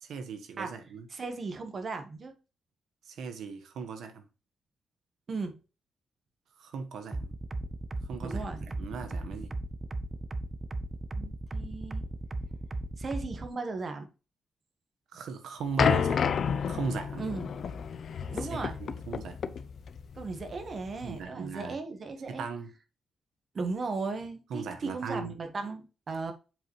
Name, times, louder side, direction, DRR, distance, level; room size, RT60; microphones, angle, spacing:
voice 1, 0.0-1.1 3.1-4.2 6.6-7.3 8.1-9.5 15.1-17.3 18.4-19.5 21.0-21.8 22.3-22.7 24.5-25.3, right 5 dB, 80° right, 1.3 m, -38 dB
voice 2, 1.1-2.3 5.3-5.6 8.2-8.6 11.1-12.1 13.0-14.1 17.2-17.5 18.3-18.8 20.2-22.4 23.5-26.3, right 3 dB, 40° right, 1.3 m, -36 dB
sound 1, 7.1-13.5, right 2 dB, 20° right, 0.6 m, -36 dB
sound 2, 15.8-21.2, left 7 dB, 55° left, 0.6 m, -30 dB
7.7 x 4.9 x 3.2 m
wide cardioid pair, 140°, 0 cm